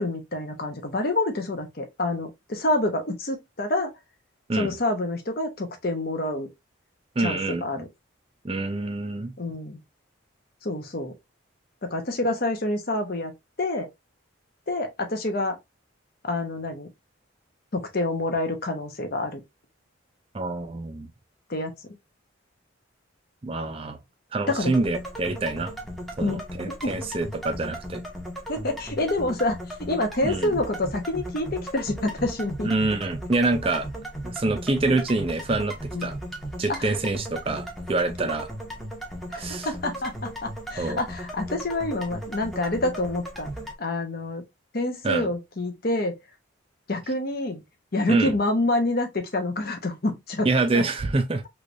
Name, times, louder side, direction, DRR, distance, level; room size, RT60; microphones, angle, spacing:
voice 1, 0.0-3.9 4.5-6.5 7.2-7.9 9.4-9.8 10.6-11.1 11.8-13.3 13.6-13.9 14.7-15.6 16.2-16.9 17.7-19.4 21.5-21.7 24.5-24.7 26.2-26.4 26.8-27.0 28.5-32.7 35.9-36.1 36.7-36.9 39.3-43.5 43.8-44.4 44.7-46.2 46.9-47.6 47.9-50.8, left 2 dB, 50° left, 0.8 m, -27 dB
voice 2, 7.2-7.8 8.4-9.3 20.3-21.1 23.4-24.0 24.3-25.7 26.2-28.0 30.2-30.5 32.6-33.9 34.2-36.2 36.6-38.5 39.4-39.7 40.8-41.0 45.0-45.3 48.1-48.3 50.4-51.5, right 2 dB, 25° right, 0.4 m, -26 dB
sound 1, 24.6-43.7, equal, ahead, 0.8 m, -36 dB
3.2 x 3.1 x 2.5 m
head